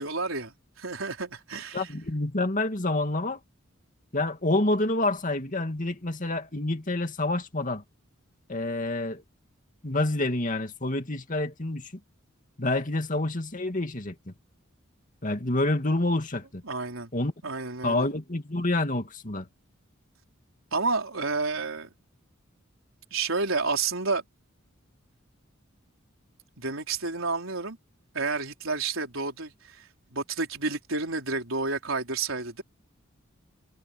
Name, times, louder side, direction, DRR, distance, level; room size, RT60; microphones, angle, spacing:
voice 1, 0.0-1.9 16.7-17.1 17.4-18.1 20.7-21.9 23.1-24.2 26.6-27.8 28.1-32.6, right 4 dB, 75° right, 4.4 m, -30 dB
voice 2, 1.7-3.4 4.1-7.8 8.5-9.2 9.8-11.9 12.6-14.1 15.2-16.6 17.1-17.3 17.8-19.5, left 2 dB, 40° left, 2.4 m, -28 dB
head